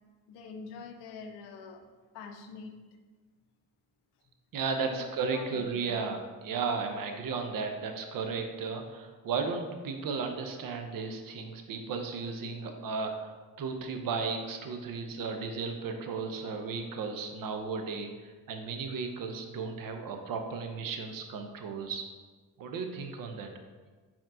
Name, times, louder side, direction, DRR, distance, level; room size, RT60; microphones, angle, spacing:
voice 1, 0.3-1.9 2.1-2.8 4.9-5.9, left 5 dB, 80° left, 5 dB, 0.6 m, -45 dB
voice 2, 4.5-22.1 22.6-23.5, right 5 dB, 60° right, 5 dB, 0.7 m, -35 dB
4.3 x 2.9 x 3.7 m, 1.4 s
supercardioid pair, 50°, 39 cm